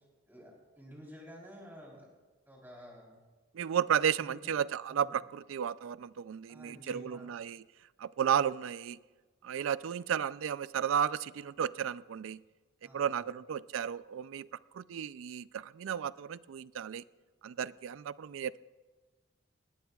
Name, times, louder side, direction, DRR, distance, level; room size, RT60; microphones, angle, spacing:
voice 1, 0.3-2.1 2.4-3.2 4.2-4.5 4.9-5.2 6.5-7.3 12.8-13.2, equal, 10° right, 3.5 m, -51 dB
voice 2, 3.5-7.6 8.0-9.0 9.4-12.4 12.9-14.5 14.7-17.0 17.4-18.6, right 8 dB, 90° right, 0.3 m, -33 dB
19.0 x 18.0 x 2.4 m
head